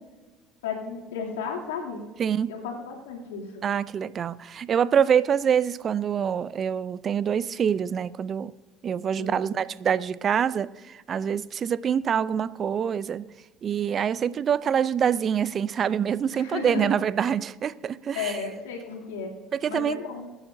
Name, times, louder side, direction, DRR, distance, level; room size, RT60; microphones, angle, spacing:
voice 1, 0.6-2.0 2.5-3.6 9.2-9.5 16.3-16.9 18.1-19.3 19.7-20.3, left 5 dB, 85° left, 2.8 m, -33 dB
voice 2, 2.2-2.5 3.6-8.5 8.8-13.3 13.6-18.4 19.5-20.0, right 8 dB, 45° right, 0.5 m, -25 dB
23.0 x 9.9 x 2.7 m
hypercardioid pair, 70°, 0 cm